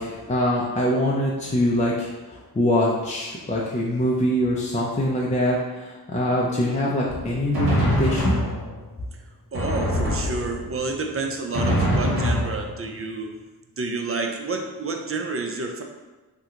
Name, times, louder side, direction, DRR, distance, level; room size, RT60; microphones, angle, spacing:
voice 1, 0.0-2.1 2.6-8.4, left 1 dB, 20° left, -4 dB, 0.5 m, -23 dB
Drum, 7.1-9.0 9.5-10.9 11.5-13.1, equal, 70° right, 1.2 m, -24 dB
voice 2, 9.5-13.3 13.8-15.8, right 3 dB, 35° right, 3 dB, 0.4 m, -29 dB
2.8 x 2.2 x 3.6 m, 1.2 s
cardioid pair, 50°, 38 cm